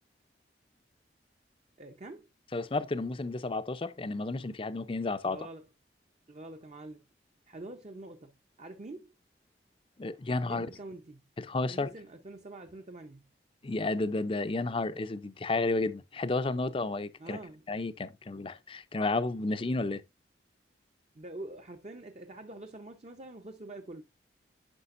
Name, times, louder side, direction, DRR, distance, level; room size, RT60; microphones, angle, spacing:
voice 1, 1.8-2.3 5.2-5.7 6.3-7.0 7.5-9.1 10.4-11.2 11.7-13.3 17.2-17.6 21.1-24.0, right 2 dB, 35° right, 0.7 m, -45 dB
voice 2, 2.5-5.4 10.0-10.7 11.4-11.9 13.6-17.4 17.7-20.0, left 3 dB, 30° left, 0.5 m, -32 dB
9.9 x 5.8 x 2.5 m
head